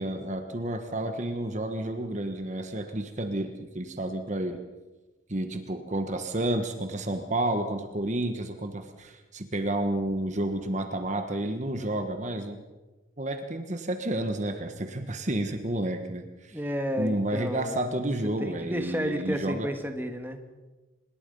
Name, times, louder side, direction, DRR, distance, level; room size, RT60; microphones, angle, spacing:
voice 1, 0.0-4.6 5.3-12.6 13.2-16.6 17.0-19.7, right 1 dB, 35° right, 6 dB, 1.3 m, -30 dB
voice 2, 16.5-17.7 18.4-20.4, equal, 10° right, 6 dB, 1.7 m, -31 dB
25.5 x 21.0 x 5.5 m, 1.2 s
head